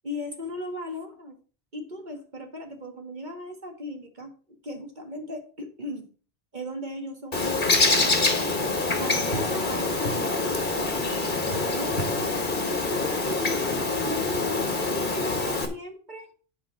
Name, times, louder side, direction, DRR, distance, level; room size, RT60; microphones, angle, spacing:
voice 1, 0.0-1.4 1.7-4.3 4.6-6.1 6.5-8.0 9.0-10.5 11.2-12.3 12.9-16.3, left 1 dB, 45° right, 3 dB, 1.9 m, -37 dB
Bird, 7.3-15.7, left 3 dB, 50° left, 1.7 m, -25 dB
9.2 x 4.8 x 6.3 m, 0.38 s
omnidirectional pair, 1.1 m